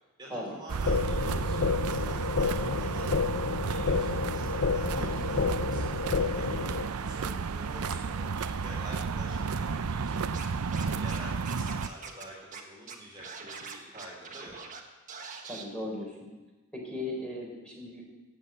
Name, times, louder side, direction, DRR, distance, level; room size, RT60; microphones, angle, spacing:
voice 1, 0.2-10.2 10.8-14.6, right 1 dB, 20° right, -4 dB, 2.9 m, -48 dB
sound 1, 0.7-11.9, right 5 dB, 90° right, 0.6 m, -32 dB
sound 2, 0.9-6.9, left 5 dB, 60° left, 0.6 m, -30 dB
voice 2, 4.9-5.3 15.4-16.2 16.7-18.0, left 1 dB, 5° left, -2 dB, 4.0 m, -37 dB
Scratching (performance technique), 10.3-11.2 11.4-12.2 12.5-12.6 12.9-14.8 15.1-15.6, right 5 dB, 35° right, 1.5 m, -43 dB
16.5 x 8.4 x 8.7 m, 1.2 s
head